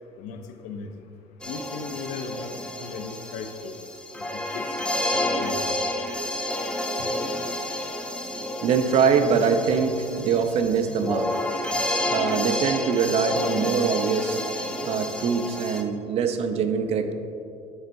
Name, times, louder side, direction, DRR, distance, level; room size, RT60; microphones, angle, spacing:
voice 1, 0.2-0.9 1.5-2.5 2.8-3.7 4.5-4.6 5.1-5.8 7.0-7.1, left 5 dB, 75° left, 7 dB, 0.6 m, -37 dB
sound 1, 1.4-15.8, left 1 dB, 10° left, 0.5 m, -30 dB
voice 2, 8.4-11.3 12.1-14.4 14.8-17.1, right 6 dB, 55° right, 7 dB, 0.5 m, -23 dB
7.9 x 5.4 x 2.6 m, 2.5 s
cardioid pair, 110°, 13 cm